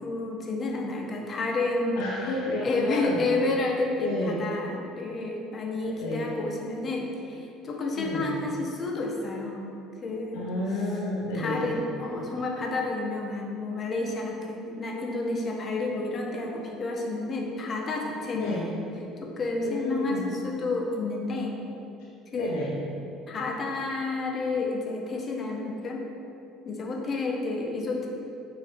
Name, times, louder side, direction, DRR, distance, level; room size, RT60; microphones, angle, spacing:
voice 1, 0.0-2.0 2.6-9.6 10.0-10.5 11.3-18.8 19.2-21.6 22.3-22.5 23.3-26.1 26.6-28.1, left 2 dB, 40° left, 0 dB, 1.1 m, -30 dB
voice 2, 2.0-3.2 4.0-4.4 6.0-6.3 7.9-8.3 10.3-11.7 18.3-18.7 19.6-20.3 22.3-22.7, left 2 dB, 70° left, -7 dB, 1.0 m, -31 dB
8.9 x 3.2 x 4.4 m, 2.7 s
figure-of-eight pair, 60°, 0 cm